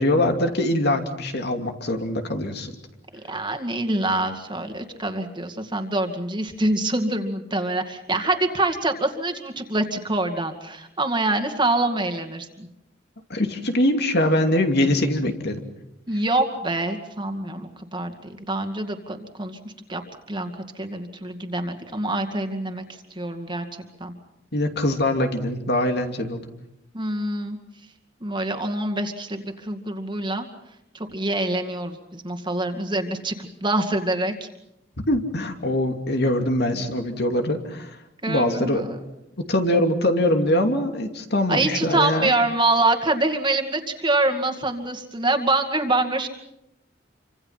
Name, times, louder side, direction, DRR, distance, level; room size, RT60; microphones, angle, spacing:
voice 1, 0.0-2.7 13.3-15.6 24.5-26.4 35.1-38.0 38.3-38.8 39.4-42.3, left 1 dB, 60° left, 5 dB, 2.7 m, -23 dB
voice 2, 3.1-12.7 16.1-20.0 20.3-22.8 23.1-23.7 24.0-24.1 26.9-27.6 28.2-30.5 30.9-34.5 38.2-39.0 41.5-46.3, right 2 dB, 25° right, 6 dB, 2.3 m, -25 dB
28.0 x 25.5 x 5.8 m, 0.84 s
head